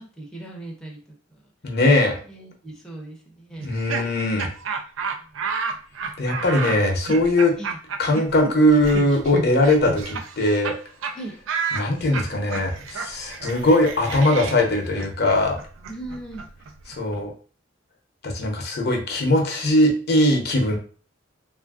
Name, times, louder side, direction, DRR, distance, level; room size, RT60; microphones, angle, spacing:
voice 1, 0.0-1.5 2.0-3.7 7.6-7.8 11.1-11.3 15.9-16.5, right 2 dB, 5° left, -2 dB, 0.6 m, -38 dB
voice 2, 1.6-2.2 3.6-4.5 6.2-7.5 8.0-10.7 11.7-15.5 16.9-17.3 18.2-20.8, left 1 dB, 55° left, 2 dB, 0.7 m, -20 dB
Laughter, 3.6-10.8 11.0-11.1 11.5-17.2, right 5 dB, 85° right, 0.4 m, -31 dB
3.2 x 2.5 x 2.3 m, 0.41 s
head